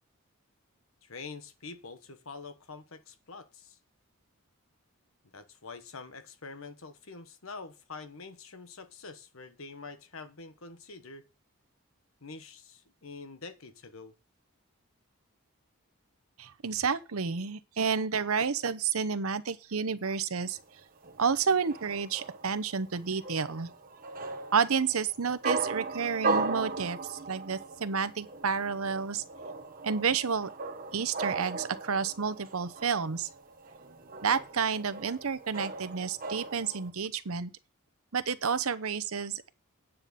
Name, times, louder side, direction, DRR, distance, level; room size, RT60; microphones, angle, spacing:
voice 1, 1.0-3.8 5.3-11.3 12.2-14.1, left 4 dB, 70° left, 1.2 m, -46 dB
voice 2, 16.4-20.6 21.2-23.7 24.5-29.2 29.8-30.5 30.9-33.3 34.2-37.5 38.1-39.5, right 6 dB, 80° right, 0.8 m, -30 dB
sound 1, 20.5-36.9, right 3 dB, 40° right, 1.5 m, -38 dB
9.8 x 5.8 x 6.8 m
head